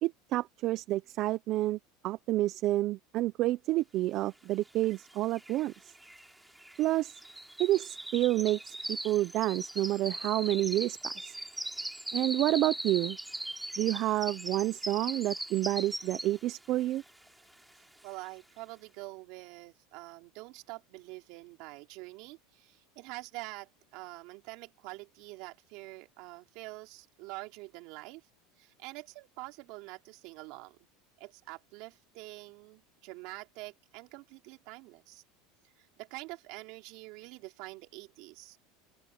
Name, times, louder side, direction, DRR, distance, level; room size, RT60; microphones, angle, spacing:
voice 1, 0.0-5.7 6.8-7.2 7.6-11.4 12.1-13.2 13.8-17.0, right 16 dB, 45° right, 0.5 m, -29 dB
sound 1, 4.8-4.9 5.1-16.6 17.0-17.3 17.7-17.8, right 1 dB, 5° right, 3.7 m, -40 dB
voice 2, 18.0-28.3 28.6-30.8 31.2-35.2 35.8-38.6, right 23 dB, 60° right, 3.4 m, -46 dB
open air
supercardioid pair, 145°, 0 cm